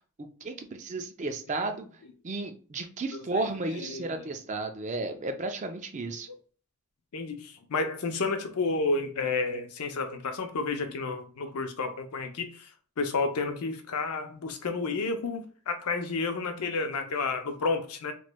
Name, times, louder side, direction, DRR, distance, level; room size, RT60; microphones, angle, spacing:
voice 1, 0.4-1.9 2.2-6.3, right 3 dB, 35° right, 0.4 m, -33 dB
voice 2, 3.1-4.2 6.3-6.4 7.1-12.7 13.0-18.1, left 3 dB, 90° left, 0.6 m, -31 dB
3.1 x 3.1 x 2.2 m
head